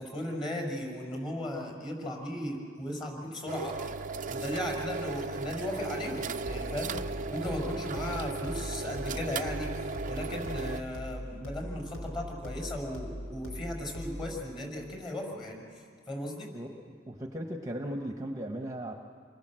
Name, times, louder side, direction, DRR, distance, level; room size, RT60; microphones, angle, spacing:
voice 1, 0.0-3.8 4.3-7.0 7.3-15.6 16.1-16.5, left 1 dB, 25° left, 2 dB, 6.1 m, -36 dB
sound 1, 3.5-10.8, right 4 dB, 40° right, 0.6 m, -36 dB
sound 2, 6.4-14.4, equal, 85° left, 4.7 m, -41 dB
voice 2, 17.1-18.9, right 1 dB, 15° right, 3 dB, 1.1 m, -36 dB
28.0 x 22.0 x 7.7 m, 2.1 s
head